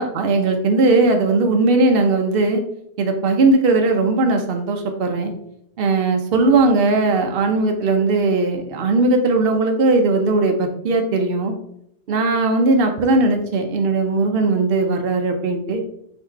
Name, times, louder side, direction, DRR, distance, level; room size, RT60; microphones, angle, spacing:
voice 1, 0.0-2.6 3.0-5.3 5.8-11.5 12.1-15.8, right 3 dB, 65° right, 4 dB, 0.9 m, -18 dB
4.2 x 2.8 x 4.5 m, 0.73 s
omnidirectional pair, 1.1 m